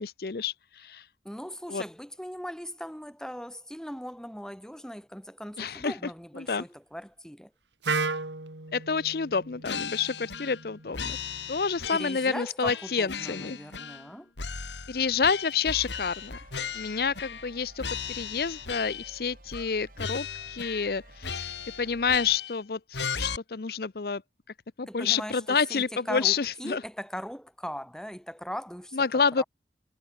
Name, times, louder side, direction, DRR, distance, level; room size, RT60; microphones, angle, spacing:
voice 1, 0.0-1.1 1.7-1.8 5.6-6.0 6.4-6.6 8.7-11.2 11.5-13.6 14.9-16.3 16.7-24.2 24.8-26.8 28.9-29.4, left 5 dB, 55° left, 0.6 m, -29 dB
voice 2, 1.2-7.5 11.9-14.3 24.9-29.1 29.4-29.5, equal, 5° left, 6.4 m, -39 dB
Wind instrument woodwind instrument, 7.8-11.7, right 4 dB, 90° right, 3.7 m, -35 dB
sound 1, 9.6-10.7 10.9-12.3 12.6-14.1 14.4-17.5 17.8-19.2 19.5-19.7 20.0-20.9 21.2-22.6 22.9-23.4, left 6 dB, 85° left, 2.3 m, -36 dB
sound 2, 15.9-22.4, right 1 dB, 50° right, 7.8 m, -52 dB
head